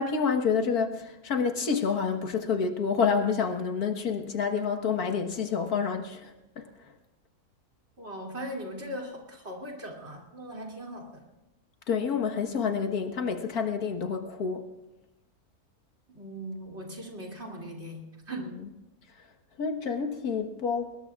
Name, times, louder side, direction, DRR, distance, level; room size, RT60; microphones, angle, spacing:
voice 1, 0.0-6.7 11.9-14.7 19.6-21.0, left 6 dB, 80° left, 5 dB, 1.9 m, -28 dB
voice 2, 8.0-11.2 16.1-18.5, right 1 dB, 45° right, 0 dB, 3.1 m, -39 dB
24.0 x 21.0 x 2.4 m, 0.98 s
omnidirectional pair, 1.6 m